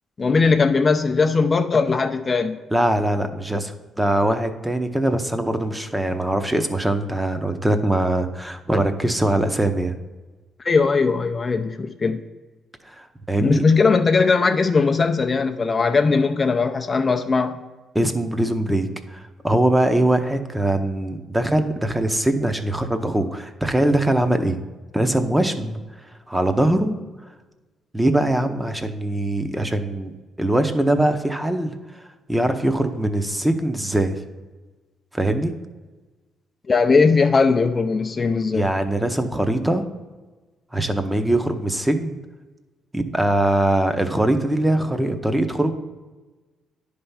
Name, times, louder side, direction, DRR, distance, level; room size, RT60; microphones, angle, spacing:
voice 1, 0.2-2.6 10.6-12.2 13.4-17.6 36.7-38.7, left 4 dB, 35° left, 7 dB, 0.5 m, -19 dB
voice 2, 2.7-9.9 12.9-13.6 17.9-24.6 24.9-25.8 26.3-27.0 27.9-30.1 30.4-32.0 32.3-34.2 35.1-35.5 38.5-39.8 40.7-42.2 42.9-45.7, right 1 dB, 10° right, 8 dB, 0.7 m, -22 dB
10.0 x 3.4 x 5.6 m, 1.2 s
cardioid pair, 90°, 0 cm